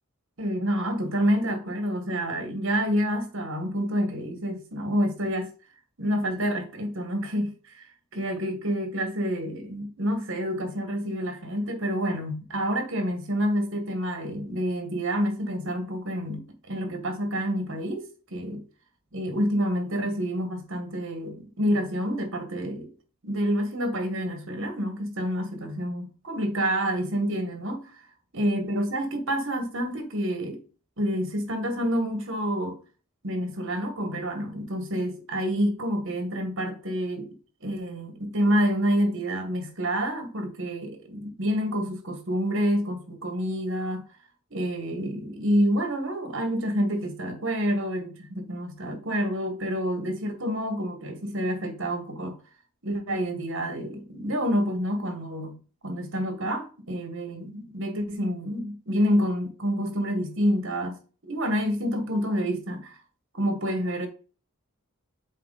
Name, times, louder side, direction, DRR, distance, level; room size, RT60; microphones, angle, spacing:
voice 1, 0.4-5.5 6.0-7.9 8.1-18.6 19.1-22.9 23.2-28.1 28.3-30.6 31.0-32.8 33.2-37.3 37.6-44.0 44.5-52.4 52.8-55.6 55.8-61.0 61.2-63.0 63.3-64.1, equal, 60° right, 1.8 m, -28 dB
7.5 x 4.2 x 4.2 m
head